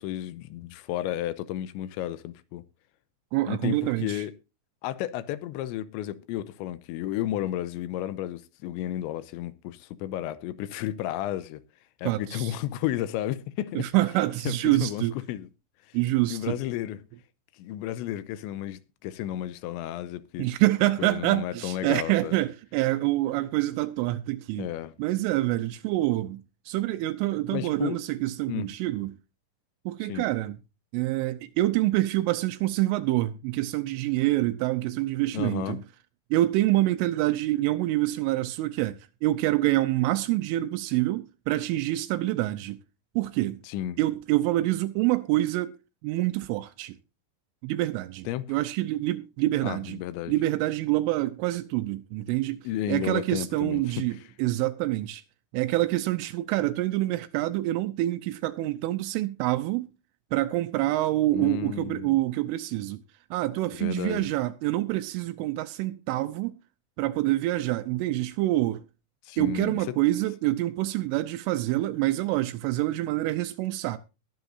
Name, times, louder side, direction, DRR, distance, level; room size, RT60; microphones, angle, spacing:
voice 1, 0.0-2.6 3.5-4.3 4.8-11.6 12.0-13.9 14.5-15.5 15.9-16.0 16.3-17.0 17.6-20.5 21.0-22.4 24.6-25.0 27.5-28.0 28.5-28.7 30.1-30.3 35.3-35.8 43.6-44.0 48.3-48.6 49.6-50.3 52.7-54.2 61.3-62.1 63.7-64.3 69.2-69.8, left 13 dB, 80° left, 2.8 m, -33 dB
voice 2, 3.3-4.2 12.1-12.6 13.8-15.1 15.9-16.6 20.4-24.7 25.0-29.1 29.9-30.6 30.9-35.8 36.3-42.8 43.2-43.6 44.0-45.7 46.0-47.0 47.6-50.0 50.3-52.6 52.9-55.2 55.5-59.9 60.3-63.0 63.3-66.5 67.0-68.8 69.4-74.0, right 16 dB, 85° right, 3.2 m, -26 dB
21.0 x 8.1 x 2.6 m
omnidirectional pair, 5.6 m